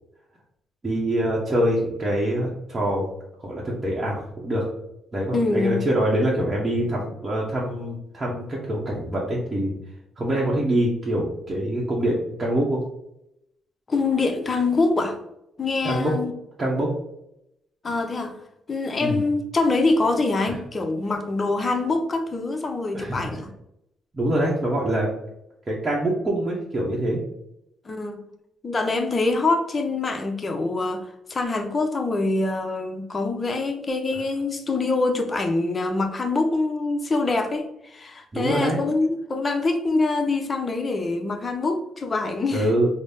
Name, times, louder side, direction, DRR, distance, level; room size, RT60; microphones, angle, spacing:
voice 1, 0.8-3.1 3.4-4.7 5.1-9.7 10.2-12.8 15.8-16.1 16.6-16.9 19.0-19.2 20.5-20.6 22.9-23.4 24.1-25.1 25.7-27.2 38.3-38.8 42.5-42.9, right 1 dB, 25° right, 0.8 m, -24 dB
voice 2, 5.3-5.8 13.9-15.2 15.6-16.3 17.8-18.4 18.7-23.5 27.9-28.2 28.6-42.7, left 3 dB, 30° left, 0.6 m, -24 dB
4.0 x 2.0 x 3.4 m
cardioid pair, 90°, 0 cm